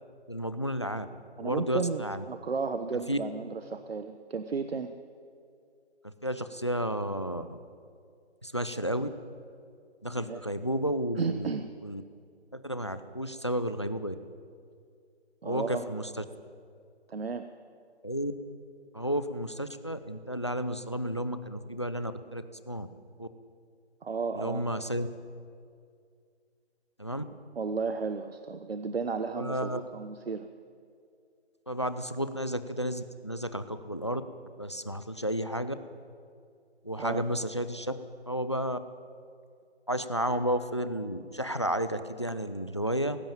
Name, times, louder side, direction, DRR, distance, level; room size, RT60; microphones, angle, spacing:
voice 1, 0.3-1.1 1.4-2.2 3.1-3.2 6.0-7.5 8.4-9.1 10.0-11.5 11.8-12.0 12.5-14.2 15.4-16.2 18.0-18.3 18.9-22.9 23.2-23.3 24.3-25.1 27.0-27.2 29.4-29.8 31.7-34.2 34.6-35.8 36.8-37.9 38.3-38.8 39.9-43.2, equal, 25° left, 12 dB, 0.5 m, -32 dB
voice 2, 1.4-4.9 10.1-10.4 11.2-11.7 15.4-15.8 17.1-17.5 24.0-24.6 27.6-30.5 37.0-37.2, right 5 dB, 60° right, 9 dB, 1.1 m, -33 dB
18.5 x 16.0 x 8.9 m, 2.3 s
hypercardioid pair, 180°, 33 cm